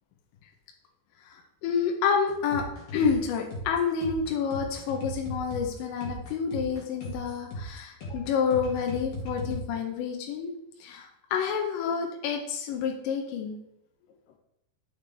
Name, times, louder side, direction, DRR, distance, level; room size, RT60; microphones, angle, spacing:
voice 1, 1.3-2.7 2.9-10.5 10.8-13.6, left 6 dB, 80° left, 2 dB, 2.1 m, -29 dB
sound 1, 2.3-9.6, equal, 50° left, 2.1 m, -37 dB
11.0 x 5.4 x 3.4 m, 0.84 s
omnidirectional pair, 4.8 m